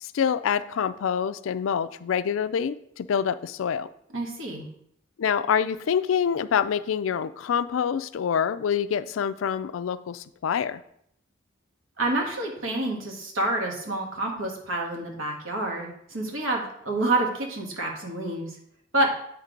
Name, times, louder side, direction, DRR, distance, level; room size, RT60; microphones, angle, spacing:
voice 1, 0.0-3.9 5.2-10.8, left 7 dB, 75° left, 14 dB, 0.3 m, -26 dB
voice 2, 4.1-4.7 12.0-18.5 18.9-19.1, right 2 dB, 80° right, 1 dB, 1.4 m, -28 dB
8.1 x 3.2 x 5.1 m, 0.72 s
head